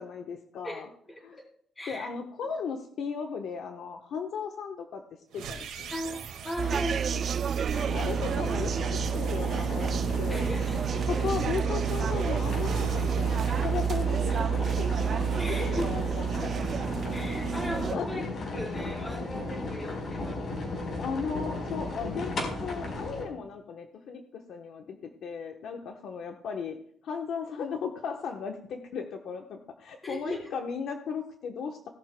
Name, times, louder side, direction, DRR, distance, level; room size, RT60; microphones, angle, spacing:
voice 1, 0.0-0.9 1.2-1.4 1.9-5.0 5.3-6.2 7.7-10.4 11.1-16.6 17.9-18.2 19.3-19.4 21.0-22.3 22.6-25.0 25.2-26.8 27.0-31.9, left 6 dB, 60° left, 3 dB, 1.0 m, -36 dB
voice 2, 0.6-1.5 1.8-2.1 5.9-7.3 9.4-9.5 10.3-11.2 15.4-15.9 17.1-18.2 18.5-20.5 30.0-30.5, equal, 15° left, -2 dB, 3.8 m, -37 dB
sound 1, 5.3-14.5, right 5 dB, 90° right, 1.8 m, -40 dB
sound 2, 6.6-17.9, right 8 dB, 40° right, 0.3 m, -29 dB
sound 3, 7.7-23.2, left 2 dB, 40° left, 4.2 m, -35 dB
18.0 x 11.5 x 2.2 m, 0.63 s
cardioid pair, 155°, 0 cm